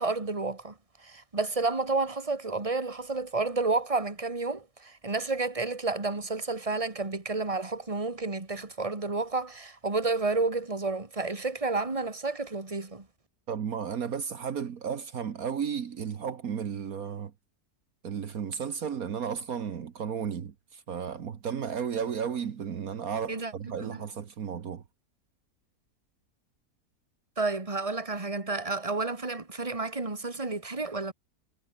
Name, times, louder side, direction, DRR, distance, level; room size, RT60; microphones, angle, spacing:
voice 1, 0.0-13.1 23.3-23.5 23.8-24.0 27.4-31.1, right 3 dB, 20° right, 2.4 m, -30 dB
voice 2, 13.5-17.3 18.0-24.8, right 7 dB, 70° right, 1.7 m, -34 dB
omnidirectional pair, 1.6 m